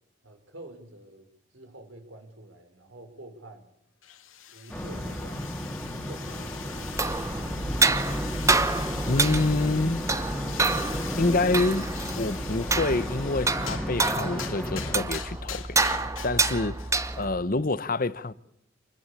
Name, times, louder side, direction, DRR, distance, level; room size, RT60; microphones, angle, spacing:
voice 1, 0.2-1.3 1.5-3.7 4.5-5.5 5.8-7.3 9.2-9.3 9.6-9.8 10.1-10.3, right 1 dB, 70° right, 5.0 m, -48 dB
sound 1, 4.0-17.1, left 9 dB, 90° left, 2.3 m, -42 dB
sound 2, 4.7-15.0, equal, 5° left, 3.1 m, -34 dB
sound 3, 6.8-17.5, right 3 dB, 15° right, 1.0 m, -28 dB
voice 2, 9.1-10.0 11.2-11.9 12.2-16.8 17.2-18.3, left 2 dB, 45° left, 1.0 m, -27 dB
28.0 x 21.0 x 8.5 m
head